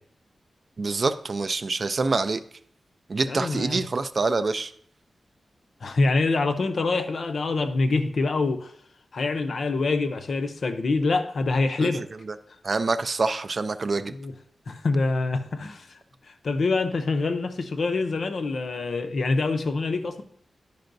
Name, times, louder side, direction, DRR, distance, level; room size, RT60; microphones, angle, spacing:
voice 1, 0.8-2.4 3.1-4.7 11.8-12.4 12.6-14.1, right 3 dB, 40° right, 0.4 m, -26 dB
voice 2, 3.3-3.8 5.8-8.7 9.1-12.0 14.0-14.3 14.7-15.9 16.4-20.2, left 3 dB, 60° left, 0.6 m, -25 dB
10.5 x 5.4 x 2.6 m
wide cardioid pair, 140°, 0 cm